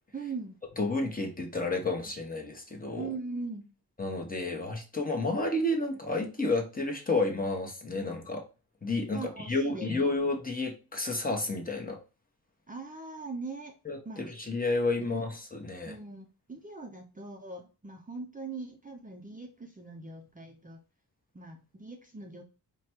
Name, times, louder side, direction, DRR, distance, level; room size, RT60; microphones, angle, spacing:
voice 1, 0.1-0.6 3.0-3.7 9.1-10.1 12.7-13.7 14.0-14.4 15.0-15.2 15.9-20.8 21.3-22.4, right 3 dB, 20° right, 0.5 m, -41 dB
voice 2, 0.8-3.1 4.0-8.4 8.8-12.0 13.9-15.9, left 2 dB, 20° left, 0.9 m, -31 dB
4.9 x 2.2 x 4.3 m
wide cardioid pair, 130°, 38 cm